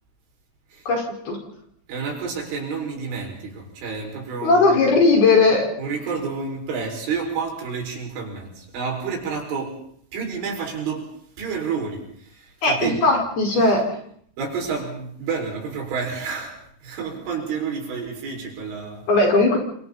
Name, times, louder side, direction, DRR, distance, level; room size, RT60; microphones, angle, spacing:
voice 1, 0.9-1.4 4.4-5.7 12.6-14.0 19.1-19.6, left 3 dB, 50° left, 1 dB, 6.9 m, -18 dB
voice 2, 1.9-4.9 5.8-9.8 10.1-11.1 11.4-13.0 13.6-13.7 14.4-19.1, right 5 dB, 80° right, 0 dB, 8.4 m, -30 dB
29.0 x 26.5 x 4.3 m, 0.64 s
omnidirectional pair, 5.5 m